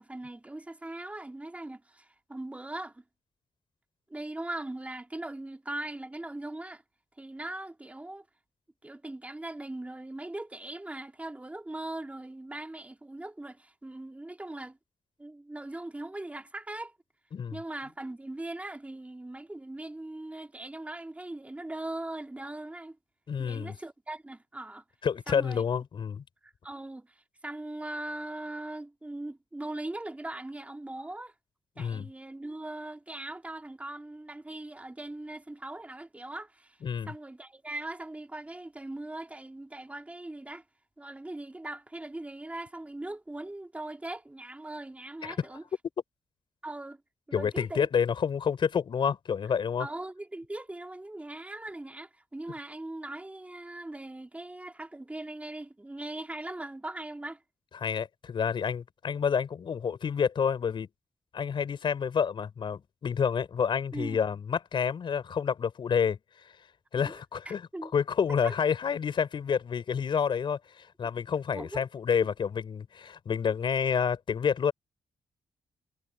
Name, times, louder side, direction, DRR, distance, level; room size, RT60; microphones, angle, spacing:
voice 1, 0.0-3.0 4.1-6.8 7.2-8.2 8.8-14.8 15.2-16.9 17.5-23.0 23.4-24.8 25.3-25.6 26.4-31.3 31.8-36.8 37.1-40.6 41.0-45.6 46.6-47.0 47.3-47.9 49.8-57.4 63.9-64.2 67.0-67.2 67.4-67.9 68.3-68.5 71.5-71.8, right 2 dB, 15° right, 3.4 m, -40 dB
voice 2, 23.3-23.7 25.0-26.2 31.8-32.1 36.8-37.1 45.2-45.5 47.3-49.9 57.8-60.9 61.3-66.2 66.9-67.6 67.9-74.7, left 7 dB, 60° left, 4.6 m, -29 dB
cardioid pair, 85°, 10 cm